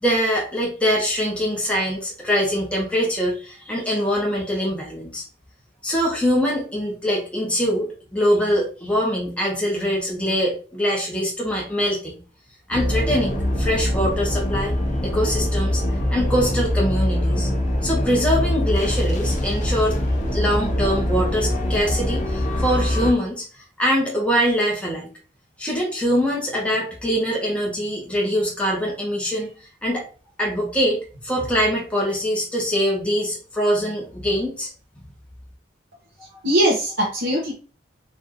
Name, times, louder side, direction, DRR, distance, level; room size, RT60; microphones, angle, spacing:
voice 1, 0.0-5.2 5.8-12.2 12.7-14.7 15.0-15.8 16.1-17.5 17.8-19.9 20.3-23.4 23.8-25.1 25.6-29.5 29.8-30.0 30.4-34.7, equal, 5° left, -3 dB, 1.2 m, -23 dB
sound 1, 12.7-23.1, left 1 dB, 40° left, 0.8 m, -23 dB
voice 2, 36.2-37.5, right 1 dB, 80° right, -2 dB, 1.1 m, -21 dB
4.4 x 2.7 x 3.0 m, 0.38 s
head